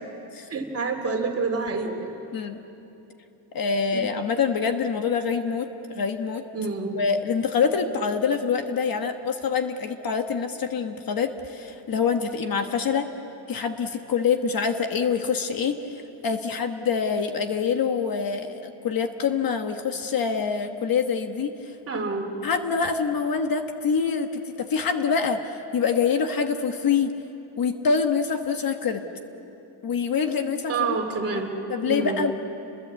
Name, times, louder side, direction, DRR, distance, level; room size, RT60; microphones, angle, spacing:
voice 1, 0.5-2.2 3.9-4.1 6.5-7.0 21.9-22.3 30.7-31.5 31.8-32.3, right 4 dB, 30° right, 3 dB, 2.8 m, -28 dB
voice 2, 3.5-6.4 6.9-13.1 13.5-15.8 16.2-21.5 22.4-27.1 27.6-29.0 29.8-31.0 31.7-32.3, left 6 dB, 45° left, 7 dB, 1.3 m, -25 dB
30.0 x 22.0 x 8.2 m, 3.0 s
cardioid pair, 155°, 49 cm